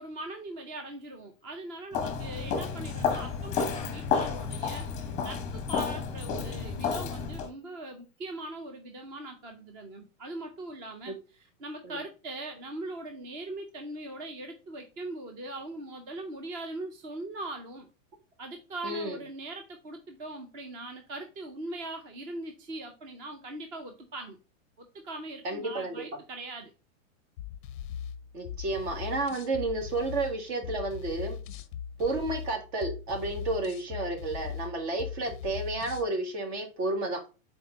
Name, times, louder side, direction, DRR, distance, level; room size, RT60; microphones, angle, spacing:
voice 1, 0.0-11.2 11.6-17.9 18.4-24.4 24.9-26.7, right 2 dB, 20° right, 0.4 m, -41 dB
Walk footsteps, 1.9-7.5, left 6 dB, 15° left, 0.9 m, -31 dB
voice 2, 18.8-19.2 25.4-26.0 28.3-31.4 32.0-37.2, right 2 dB, 50° right, 2.0 m, -31 dB
sound 1, 27.4-36.1, left 8 dB, 40° left, 0.5 m, -40 dB
4.3 x 4.2 x 5.1 m
supercardioid pair, 160°, 40 cm